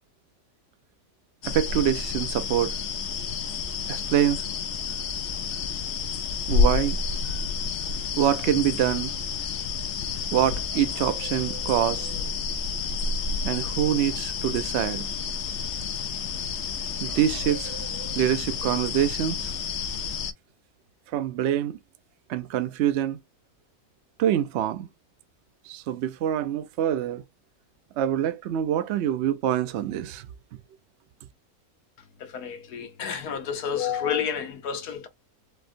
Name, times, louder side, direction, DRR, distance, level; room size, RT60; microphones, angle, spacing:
sound 1, 1.4-20.3, left 5 dB, 65° left, 0.7 m, -30 dB
voice 1, 1.5-2.8 3.9-4.4 6.5-7.0 8.2-9.1 10.3-12.2 13.4-15.1 17.0-19.5 21.1-21.8 22.3-23.2 24.2-24.9 25.7-27.2 28.0-30.3, right 10 dB, 70° right, 0.6 m, -25 dB
voice 2, 32.2-35.1, left 8 dB, 80° left, 1.3 m, -30 dB
4.3 x 2.1 x 2.5 m
omnidirectional pair, 1.6 m